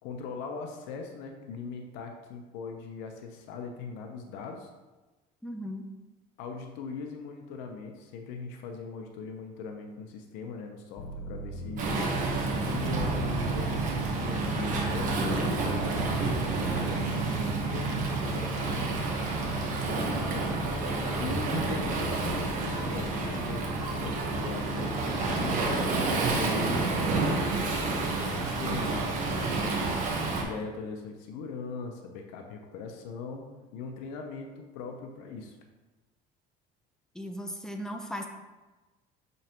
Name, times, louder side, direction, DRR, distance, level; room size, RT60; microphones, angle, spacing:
voice 1, 0.0-4.7 6.4-12.1 12.5-20.5 20.9-27.3 28.2-29.0 30.4-33.4 33.7-35.6, left 5 dB, 85° left, 4 dB, 0.8 m, -40 dB
voice 2, 5.4-5.9 29.5-29.9 37.1-38.3, equal, 5° left, 3 dB, 0.6 m, -37 dB
sound 1, 11.0-18.8 19.3-20.1, right 3 dB, 55° left, 0.6 m, -43 dB
Waves surf, 11.8-30.4, right 2 dB, 50° right, 1.2 m, -29 dB
sound 2, 12.2-20.5, right 10 dB, 80° right, 0.4 m, -38 dB
6.3 x 5.5 x 3.0 m, 1.2 s
cardioid pair, 150°, 18 cm